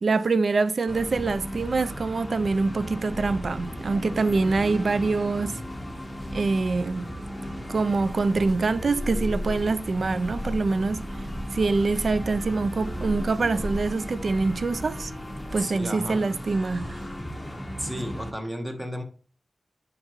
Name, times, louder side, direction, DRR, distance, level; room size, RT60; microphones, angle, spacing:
voice 1, 0.0-5.6 6.3-7.1 7.7-11.3 11.5-15.1 15.5-17.0, right 3 dB, 60° right, 0.3 m, -25 dB
sound 1, 0.9-18.3, equal, 10° left, 1.0 m, -36 dB
sound 2, 7.9-15.6, left 1 dB, 35° right, 2.1 m, -37 dB
voice 2, 15.6-16.3 17.8-19.0, equal, 15° right, 1.2 m, -33 dB
9.7 x 3.8 x 3.0 m
wide cardioid pair, 80°, 0 cm